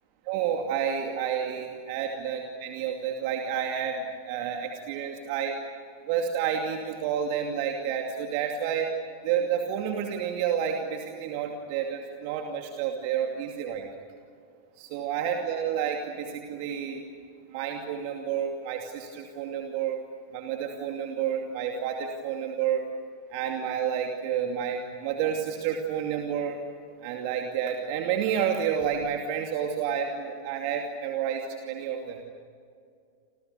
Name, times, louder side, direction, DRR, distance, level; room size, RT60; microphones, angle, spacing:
voice 1, 0.2-5.6 6.1-8.9 9.2-13.9 14.8-17.1 17.5-20.0 20.3-22.9 23.3-26.6 27.0-32.2, right 8 dB, 45° right, 3 dB, 2.5 m, -30 dB
30.0 x 27.5 x 6.9 m, 2.3 s
figure-of-eight pair, 90°, 0 cm